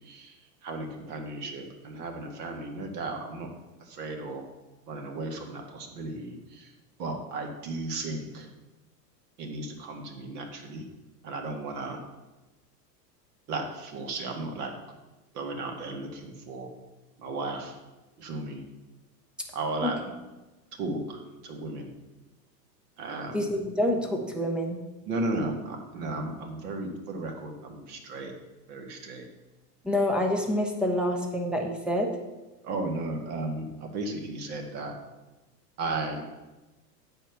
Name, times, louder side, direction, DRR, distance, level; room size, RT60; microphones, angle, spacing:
voice 1, 0.6-3.5 4.0-4.5 4.9-6.7 7.0-8.5 9.4-10.8 11.2-12.0 13.5-14.7 15.3-16.7 17.2-17.7 18.2-18.6 19.5-20.0 20.8-21.9 23.0-23.5 25.1-28.3 28.7-29.2 32.6-34.9 35.8-36.2, right 2 dB, 65° right, 3 dB, 2.0 m, -34 dB
voice 2, 23.3-24.8 29.8-32.1, left 1 dB, ahead, 2 dB, 0.3 m, -27 dB
9.0 x 4.5 x 6.8 m, 1.1 s
supercardioid pair, 130°, 49 cm